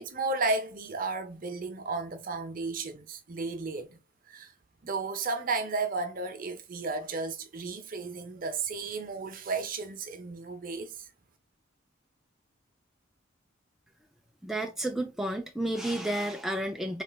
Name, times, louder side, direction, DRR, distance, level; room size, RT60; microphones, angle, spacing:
voice 1, 0.0-3.9 4.3-4.5 4.8-10.9, right 3 dB, 45° right, 0.7 m, -33 dB
voice 2, 14.4-17.0, right 1 dB, ahead, 0.4 m, -31 dB
4.3 x 3.2 x 2.3 m
head